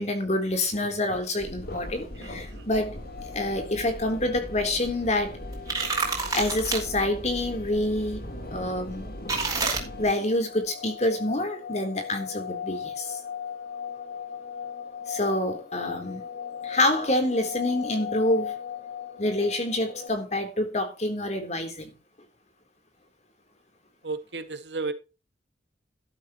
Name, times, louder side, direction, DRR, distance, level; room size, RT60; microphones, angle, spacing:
voice 1, 0.0-3.0 3.2-5.3 6.3-9.1 10.0-13.2 15.1-16.3 16.6-18.5 19.2-21.9, left 1 dB, 40° left, 3.7 m, -27 dB
sound 1, 1.4-10.1, equal, 60° left, 3.8 m, -39 dB
voice 2, 2.2-2.7 24.0-24.9, right 3 dB, 85° right, 2.2 m, -34 dB
sound 2, 2.7-20.1, left 8 dB, 90° left, 4.3 m, -39 dB
Eat an apple, 5.5-6.8 9.3-9.8, right 4 dB, 20° right, 4.7 m, -27 dB
13.5 x 12.0 x 3.1 m
head